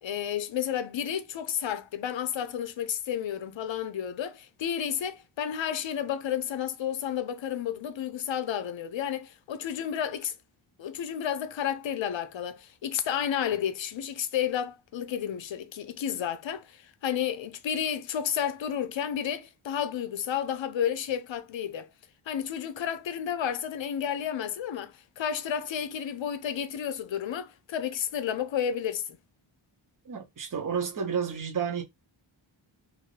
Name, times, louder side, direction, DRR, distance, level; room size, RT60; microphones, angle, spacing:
voice 1, 0.0-10.3 10.8-21.9 22.3-29.2, left 9 dB, 65° left, 0.6 m, -31 dB
voice 2, 30.0-31.8, right 6 dB, 40° right, 0.9 m, -31 dB
2.8 x 2.6 x 3.2 m
wide cardioid pair, 130°, 49 cm